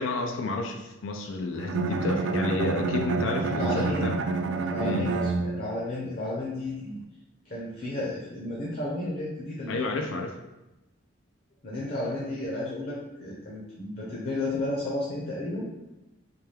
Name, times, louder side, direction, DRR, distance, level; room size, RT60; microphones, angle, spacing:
voice 1, 0.0-4.1 4.8-5.1 9.7-10.4, left 2 dB, 80° left, 4 dB, 0.4 m, -30 dB
Bowed string instrument, 1.6-5.9, right 3 dB, 70° right, 0.3 m, -28 dB
voice 2, 3.6-4.1 4.6-7.0 7.4-10.0 11.6-15.7, left 1 dB, 50° left, -5 dB, 0.7 m, -32 dB
4.4 x 2.3 x 3.2 m, 0.98 s
head